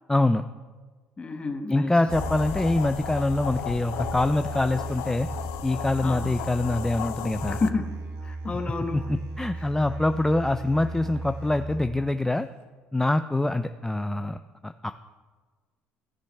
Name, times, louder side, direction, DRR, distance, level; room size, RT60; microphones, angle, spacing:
voice 1, 0.1-0.4 1.7-5.3 5.6-7.6 8.9-12.5 12.9-14.9, left 2 dB, 10° left, 9 dB, 0.3 m, -25 dB
voice 2, 1.2-1.9 6.0-6.3 7.5-8.0 8.2-9.1 9.5-9.7, left 3 dB, 25° left, 6 dB, 1.1 m, -30 dB
Musical instrument, 2.0-12.0, right 3 dB, 70° right, 1.3 m, -36 dB
sound 1, 2.1-7.7, left 12 dB, 80° left, 0.4 m, -35 dB
15.5 x 6.2 x 3.3 m, 1.4 s
supercardioid pair, 85°, 4 cm